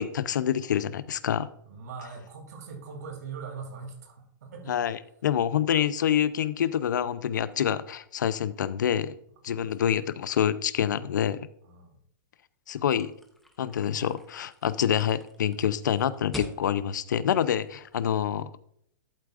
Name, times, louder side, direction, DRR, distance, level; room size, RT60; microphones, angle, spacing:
voice 1, 0.0-1.5 4.7-9.1 9.4-11.5 12.7-13.1 13.6-18.5, left 9 dB, 65° left, 15 dB, 0.6 m, -27 dB
voice 2, 1.6-4.8 9.6-9.9 11.6-12.0, right 5 dB, 55° right, 2 dB, 2.9 m, -41 dB
sound 1, 12.9-18.2, equal, ahead, 0.7 m, -46 dB
11.5 x 8.3 x 2.5 m, 0.70 s
hypercardioid pair, 175°, 11 cm